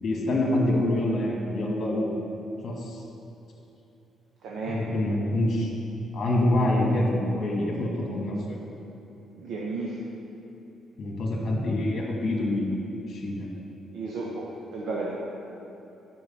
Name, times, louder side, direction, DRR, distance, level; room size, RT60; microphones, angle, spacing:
voice 1, 0.0-2.2 2.6-3.0 4.7-5.7 6.1-8.6 11.0-12.8 13.1-13.5, left 1 dB, 50° left, -3 dB, 1.8 m, -26 dB
voice 2, 4.4-4.8 9.3-10.0 13.9-15.2, right 3 dB, 80° right, -4 dB, 1.1 m, -33 dB
9.7 x 6.0 x 5.7 m, 2.9 s
cardioid pair, 90°, 0 cm